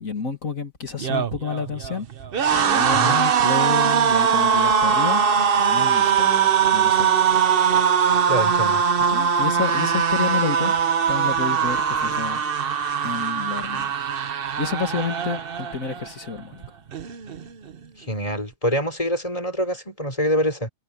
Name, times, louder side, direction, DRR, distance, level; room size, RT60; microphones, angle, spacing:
voice 1, 0.0-2.1 2.5-5.2 5.6-7.3 9.1-10.7 11.1-12.4 13.0-13.9 14.6-16.6, left 5 dB, 55° left, 2.6 m, -29 dB
sound 1, 0.9-16.1 16.4-16.7 16.9-17.7, right 7 dB, 45° right, 0.8 m, -21 dB
voice 2, 8.3-8.8 18.0-20.7, equal, 20° left, 4.3 m, -25 dB
omnidirectional pair, 1.8 m